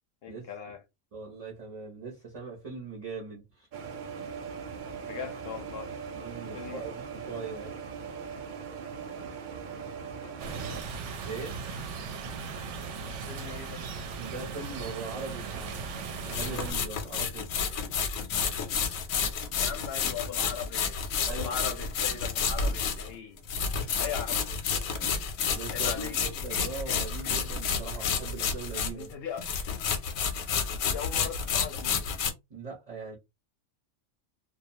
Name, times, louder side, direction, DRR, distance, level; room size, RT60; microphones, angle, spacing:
voice 1, 0.2-0.8 5.0-5.9 6.5-6.8 10.2-10.4 13.3-13.8 19.5-23.4 24.0-24.4 25.7-26.3 28.9-29.5 30.7-32.0, left 7 dB, 60° left, 0.7 m, -39 dB
voice 2, 1.1-3.7 6.1-7.8 11.2-12.0 14.2-17.5 21.2-21.8 22.6-22.7 23.8-23.9 25.0-29.1 32.5-33.2, right 4 dB, 40° right, 0.6 m, -41 dB
sound 1, 3.7-10.8, right 6 dB, 90° right, 0.4 m, -40 dB
sound 2, 10.4-16.7, right 5 dB, 65° right, 0.8 m, -37 dB
sound 3, 14.8-14.9 16.2-29.1 29.4-32.3, left 6 dB, 85° left, 1.0 m, -30 dB
2.4 x 2.1 x 2.7 m
omnidirectional pair, 1.4 m